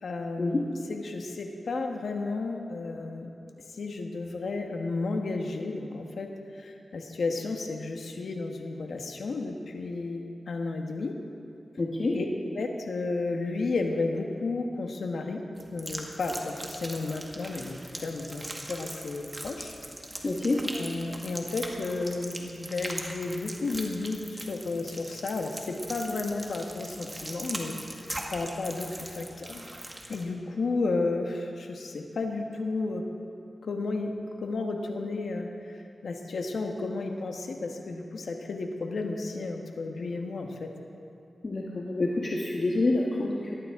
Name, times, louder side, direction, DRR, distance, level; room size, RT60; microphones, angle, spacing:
voice 1, 0.0-3.3 3.7-11.1 12.1-12.3 12.5-15.4 15.7-19.8 20.7-29.7 30.1-33.0 33.6-34.1 34.4-40.7, left 3 dB, 85° left, 3 dB, 1.2 m, -33 dB
voice 2, 11.8-12.2 20.2-20.6 41.4-43.5, left 2 dB, 50° left, -3 dB, 1.4 m, -27 dB
sound 1, 15.6-30.2, right 1 dB, 20° right, 1.8 m, -40 dB
20.0 x 14.5 x 3.6 m, 2.7 s
wide cardioid pair, 75°, 0 cm